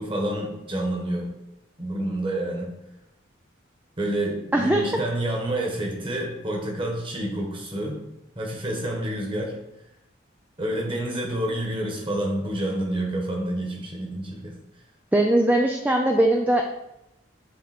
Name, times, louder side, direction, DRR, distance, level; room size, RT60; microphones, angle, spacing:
voice 1, 0.0-1.3 1.8-2.7 4.0-8.0 8.3-9.6 10.6-14.6, right 1 dB, 25° right, -1 dB, 1.6 m, -28 dB
voice 2, 4.5-4.8 15.1-16.6, right 1 dB, 10° right, 2 dB, 0.4 m, -20 dB
8.3 x 3.7 x 4.4 m, 0.88 s
head